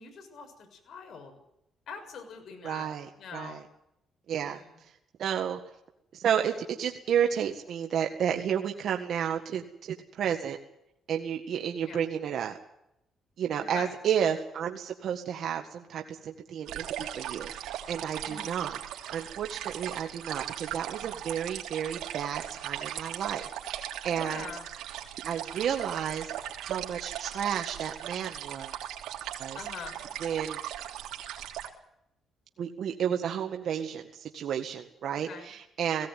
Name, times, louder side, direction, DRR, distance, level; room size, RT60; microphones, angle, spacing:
voice 1, 0.0-1.3 1.9-2.9 3.2-3.6 4.4-4.6 11.9-12.0 13.6-13.9 18.3-18.5 24.1-24.6 29.5-30.0 35.3-35.5, left 6 dB, 55° left, 5 dB, 6.8 m, -43 dB
voice 2, 2.6-3.6 4.3-4.9 5.2-5.6 6.1-10.6 11.1-12.6 13.4-24.8 25.2-28.7 29.4-29.9 30.2-30.6 32.6-36.1, right 8 dB, 60° right, 3 dB, 1.8 m, -32 dB
sound 1, 16.7-31.7, right 11 dB, 85° right, 3.2 m, -38 dB
18.0 x 17.5 x 9.3 m, 0.81 s
cardioid pair, 115°, 0 cm